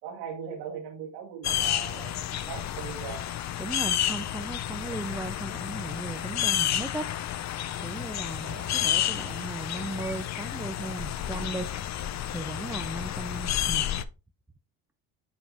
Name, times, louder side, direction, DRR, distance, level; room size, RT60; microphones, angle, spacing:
voice 1, 0.0-2.1 2.5-3.2 8.4-8.7, right 7 dB, 85° right, 2.3 m, -39 dB
sound 1, 1.4-14.0, left 11 dB, 40° left, 0.6 m, -31 dB
voice 2, 3.6-7.1 7.4-11.7 12.3-13.9, right 2 dB, 5° right, 0.4 m, -37 dB
9.5 x 5.2 x 2.9 m
supercardioid pair, 105°, 42 cm